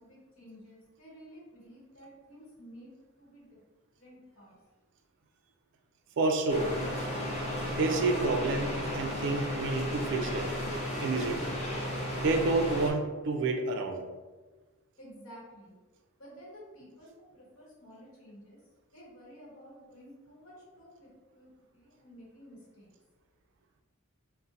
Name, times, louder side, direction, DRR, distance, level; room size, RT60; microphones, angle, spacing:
voice 1, 0.0-2.9 3.2-3.6 4.0-4.6 15.0-15.8 16.2-18.6 18.9-21.1 21.3-22.9, equal, 65° left, -4 dB, 1.0 m, -52 dB
voice 2, 6.2-6.7 7.7-10.5 11.0-11.5 12.2-14.0, right 3 dB, 55° right, 4 dB, 0.3 m, -29 dB
sound 1, 6.5-12.9, left 1 dB, 30° left, 0.5 m, -34 dB
2.5 x 2.1 x 3.8 m, 1.3 s
head